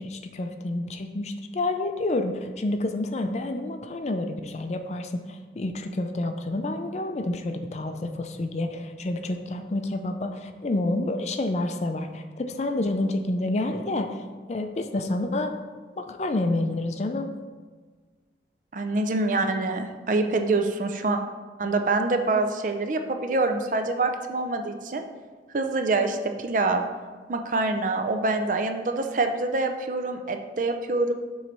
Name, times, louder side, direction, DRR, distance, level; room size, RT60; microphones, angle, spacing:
voice 1, 0.0-14.2 14.5-15.5 16.0-17.3, left 2 dB, 40° left, 7 dB, 0.4 m, -29 dB
voice 2, 18.7-21.2 21.6-25.0 25.5-26.8 27.3-31.1, right 3 dB, 45° right, 6 dB, 0.5 m, -25 dB
7.0 x 3.2 x 5.3 m, 1.4 s
head